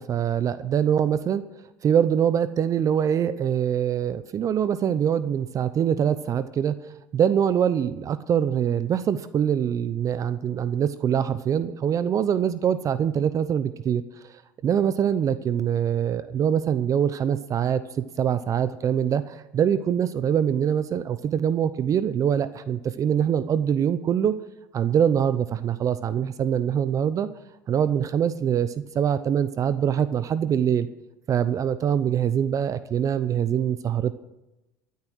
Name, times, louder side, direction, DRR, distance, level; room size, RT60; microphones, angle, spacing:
voice 1, 0.0-1.4 1.8-6.8 7.1-14.3 14.6-17.8 18.2-24.4 24.7-27.3 27.7-30.9 31.3-34.1, right 8 dB, 40° right, 14 dB, 0.7 m, -24 dB
13.0 x 9.5 x 6.2 m, 0.97 s
hypercardioid pair, 90°, 9 cm